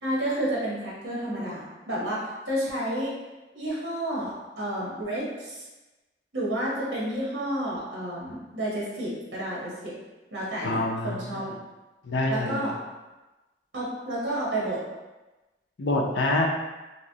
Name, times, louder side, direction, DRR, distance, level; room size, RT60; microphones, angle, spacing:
voice 1, 0.0-3.2 3.5-5.6 6.3-9.9 10.3-11.4 12.3-12.7 13.7-14.8, right 1 dB, 75° right, -6 dB, 1.0 m, -30 dB
voice 2, 10.6-11.4 12.0-12.7 15.8-16.5, left 2 dB, 90° left, 0 dB, 0.5 m, -26 dB
3.0 x 3.0 x 2.7 m, 1.1 s
head